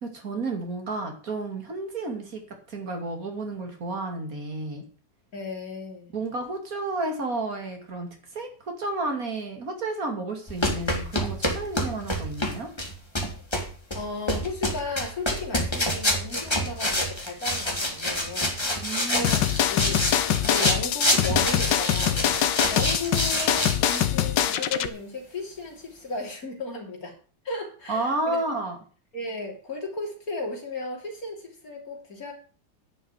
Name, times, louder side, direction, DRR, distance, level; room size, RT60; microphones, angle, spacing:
voice 1, 0.0-2.4 2.7-4.8 6.1-8.5 8.8-12.7 18.7-19.3 27.9-28.8, right 2 dB, 50° right, 4 dB, 3.0 m, -31 dB
voice 2, 5.3-6.1 13.9-18.6 19.1-20.0 20.4-22.2 22.7-27.1 27.5-28.4 29.1-32.3, left 2 dB, 55° left, 0 dB, 3.8 m, -35 dB
sound 1, 10.5-24.1, left 1 dB, 15° left, 2.0 m, -27 dB
sound 2, 19.2-24.9, left 10 dB, 85° left, 1.6 m, -24 dB
10.5 x 6.3 x 8.3 m, 0.41 s
omnidirectional pair, 1.9 m